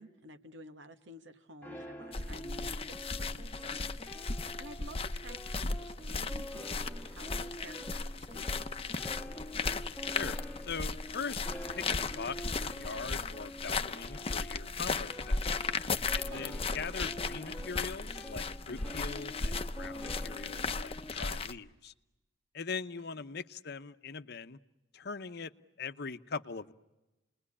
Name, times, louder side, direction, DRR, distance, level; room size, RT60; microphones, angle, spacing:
voice 1, 0.0-8.8 16.3-16.4, right 1 dB, 70° right, 8 dB, 1.7 m, -52 dB
sound 1, 1.6-21.2, equal, 10° left, 1.6 m, -47 dB
sound 2, 2.1-21.5, left 4 dB, 30° left, 0.9 m, -36 dB
voice 2, 10.1-11.4 11.7-15.4 16.1-21.9 22.5-24.6 24.9-25.5 25.8-26.7, left 5 dB, 60° left, 11 dB, 0.9 m, -41 dB
29.0 x 21.0 x 9.8 m, 1.1 s
head